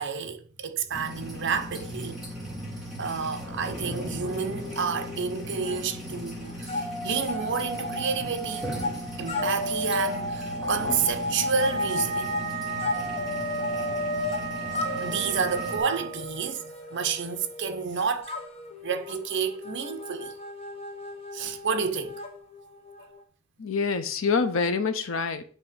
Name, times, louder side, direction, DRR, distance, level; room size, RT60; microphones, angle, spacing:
voice 1, 0.0-8.7 9.2-12.3 14.7-18.3 18.8-20.3 21.3-22.2, right 6 dB, 55° right, 0.7 m, -30 dB
sound 1, 0.9-15.8, left 1 dB, ahead, 1.7 m, -38 dB
sound 2, 4.2-5.8 6.1-23.2, left 1 dB, 30° left, 0.9 m, -34 dB
Wind instrument woodwind instrument, 11.6-16.3, right 8 dB, 25° right, 0.9 m, -36 dB
voice 2, 23.6-25.4, left 5 dB, 65° left, 0.6 m, -26 dB
8.3 x 2.9 x 5.0 m
head